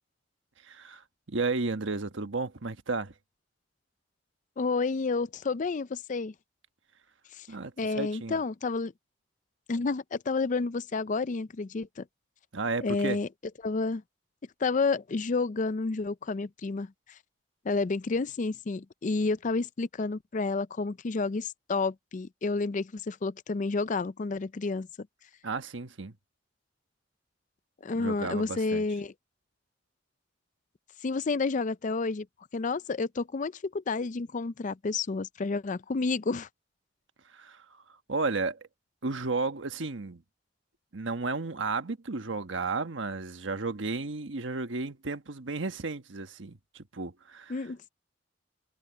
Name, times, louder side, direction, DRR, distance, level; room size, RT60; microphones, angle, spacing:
voice 1, 0.6-3.1 7.5-8.4 12.5-13.2 25.4-26.1 27.9-28.8 37.3-37.6 38.1-38.6 39.0-40.2 40.9-47.5, right 3 dB, 90° right, 1.3 m, -33 dB
voice 2, 4.6-6.3 7.3-7.5 7.8-8.9 9.7-12.0 12.8-13.3 13.6-14.0 14.6-16.9 17.6-25.1 27.8-29.1 31.0-32.3 32.5-36.5 47.5-47.9, left 3 dB, 40° left, 0.5 m, -30 dB
head